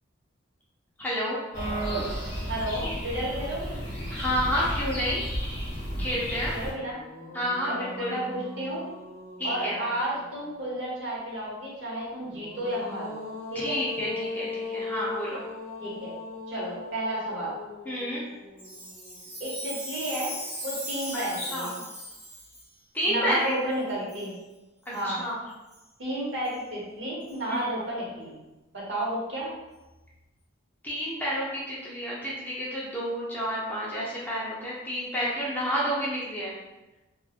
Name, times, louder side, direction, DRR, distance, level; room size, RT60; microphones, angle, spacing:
voice 1, 1.0-1.4 4.1-5.3 6.0-6.5 7.3-8.2 9.4-9.8 13.5-15.4 17.9-18.2 21.1-21.7 22.9-23.5 24.0-24.1 24.9-25.4 27.5-27.7 30.8-36.6, equal, 10° left, -7 dB, 0.5 m, -30 dB
sound 1, 1.5-6.7, equal, 55° left, 1.2 m, -32 dB
voice 2, 2.5-3.8 6.5-7.0 7.6-8.9 9.4-13.2 13.5-13.8 15.8-16.1 16.5-17.5 19.4-20.4 20.6-21.8 23.0-24.3 24.9-25.2 26.0-28.4 28.7-29.5, right 1 dB, 70° right, -5 dB, 0.9 m, -32 dB
sound 2, 6.9-10.5 12.2-19.5, left 3 dB, 40° left, 0.8 m, -39 dB
Chime, 18.6-22.7 23.3-23.4 24.1-24.3 24.8-25.0 25.7-25.8 26.4-26.5 27.3-27.4, right 1 dB, 25° right, 1.2 m, -38 dB
2.9 x 2.3 x 2.3 m, 1.1 s
head